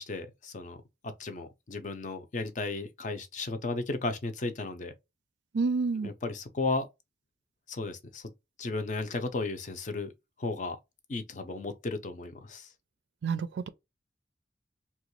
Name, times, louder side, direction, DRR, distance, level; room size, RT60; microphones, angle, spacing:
voice 1, 0.0-4.9 6.0-6.9 7.7-8.3 8.6-10.1 10.4-10.8 11.1-12.7, left 3 dB, 45° left, 0.5 m, -34 dB
voice 2, 5.5-6.1 13.2-13.7, right 4 dB, 85° right, 0.4 m, -29 dB
3.0 x 2.2 x 3.0 m
head